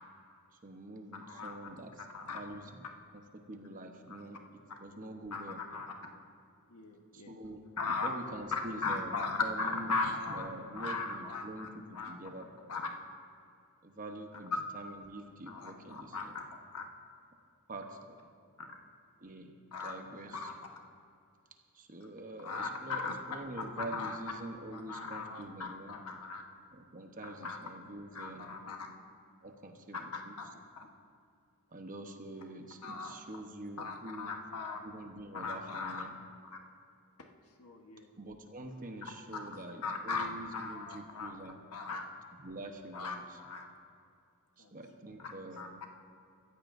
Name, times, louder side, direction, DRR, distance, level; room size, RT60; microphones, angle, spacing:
voice 1, 0.6-2.1 2.3-2.9 3.1-5.6 7.1-7.6 8.0-12.6 13.8-16.4 17.7-18.2 19.2-19.5 19.8-20.5 21.7-26.0 26.7-28.5 29.4-30.5 31.7-34.3 34.8-36.2 38.2-41.6 42.3-43.4 44.6-45.8, right 1 dB, 35° right, 4 dB, 1.0 m, -46 dB
voice 2, 1.3-1.6 2.1-2.4 5.3-5.9 6.7-7.3 7.8-8.1 8.5-10.5 10.7-11.7 11.9-12.1 12.7-12.9 15.5-16.4 16.7-16.9 19.7-19.9 20.4-20.5 22.4-23.2 23.6-23.7 23.9-24.2 24.7-26.4 27.4-27.6 28.1-28.8 29.9-30.5 32.8-33.1 33.8-34.9 35.3-36.0 36.4-36.6 37.6-38.1 39.0-39.1 39.8-41.3 41.7-42.0 42.9-43.7 44.6-44.7 45.6-45.7, left 3 dB, 85° left, 2 dB, 1.3 m, -38 dB
24.5 x 14.0 x 2.7 m, 2.3 s
head